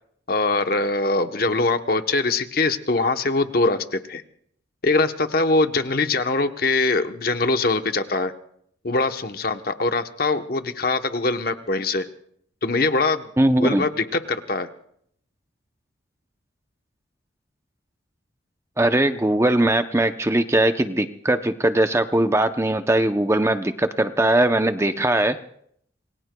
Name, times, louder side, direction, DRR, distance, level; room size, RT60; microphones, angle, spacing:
voice 1, 0.3-4.2 4.8-8.3 8.8-12.1 12.6-13.3 13.6-14.7, left 3 dB, 50° left, 8 dB, 0.9 m, -22 dB
voice 2, 13.4-13.9 18.8-25.4, right 1 dB, 15° right, 9 dB, 0.6 m, -20 dB
28.0 x 22.0 x 2.3 m, 0.68 s
head